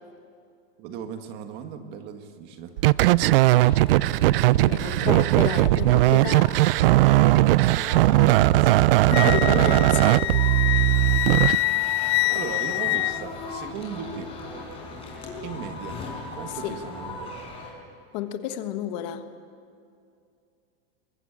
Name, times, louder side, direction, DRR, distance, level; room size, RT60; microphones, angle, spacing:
voice 1, 0.8-2.8 4.7-5.3 7.5-8.9 11.2-11.7 12.3-14.4 15.4-16.0 16.3-17.4, right 7 dB, 35° right, 7 dB, 1.6 m, -38 dB
sound 1, 2.8-11.5, right 17 dB, 65° right, 0.5 m, -19 dB
sound 2, 3.2-17.7, left 3 dB, 20° left, 4.9 m, -39 dB
voice 2, 4.6-6.5 9.1-10.2 16.6-16.8 18.1-19.3, left 11 dB, 45° left, 8 dB, 1.5 m, -31 dB
Wind instrument woodwind instrument, 9.1-13.7, left 17 dB, 85° left, 0.6 m, -26 dB
23.0 x 22.5 x 8.8 m, 2.4 s
supercardioid pair, 170°, 31 cm